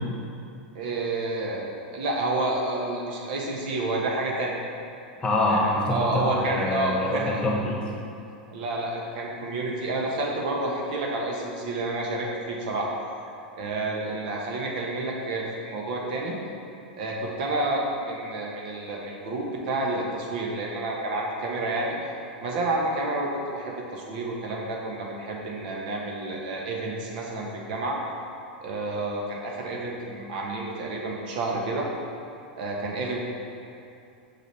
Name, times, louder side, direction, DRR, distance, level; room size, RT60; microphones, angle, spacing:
voice 1, 0.7-4.6 5.5-5.6 5.9-7.4 8.5-12.9 13.6-16.3 16.9-22.0 22.4-23.3 23.5-28.0 28.6-31.9 32.6-33.2, right 2 dB, 60° right, -2 dB, 1.2 m, -29 dB
voice 2, 5.2-7.8, left 1 dB, 20° left, -2 dB, 1.2 m, -25 dB
6.5 x 5.9 x 3.3 m, 2.6 s
hypercardioid pair, 100°, 5 cm